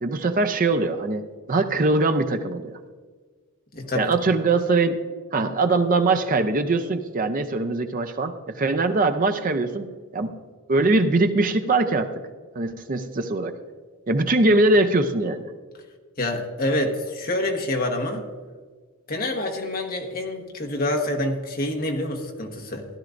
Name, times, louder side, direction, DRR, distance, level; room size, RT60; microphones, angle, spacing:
voice 1, 0.0-2.8 3.9-5.0 5.3-9.9 10.1-10.4 10.7-12.2 12.6-13.6 14.1-15.4, right 2 dB, 40° right, 8 dB, 0.5 m, -22 dB
voice 2, 3.7-4.1 16.2-18.3 19.1-22.8, left 1 dB, 40° left, 3 dB, 1.3 m, -27 dB
16.0 x 12.0 x 2.6 m, 1.5 s
head